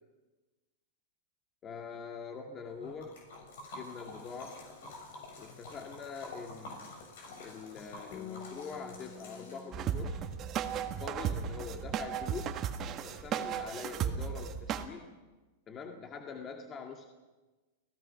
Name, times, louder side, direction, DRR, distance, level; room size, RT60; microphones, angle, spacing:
voice 1, 1.6-3.2 3.7-4.7 5.4-6.9 7.4-10.3 10.8-12.7 13.0-15.1 15.7-17.1, left 5 dB, 25° left, 3 dB, 2.0 m, -44 dB
Liquid, 2.8-10.0, left 2 dB, 75° left, 7.2 m, -48 dB
Bass guitar, 8.1-14.4, left 6 dB, 50° left, 2.0 m, -52 dB
sound 1, 9.7-14.9, right 8 dB, 35° right, 1.5 m, -35 dB
30.0 x 17.0 x 5.8 m, 1.2 s
hypercardioid pair, 130°, 0 cm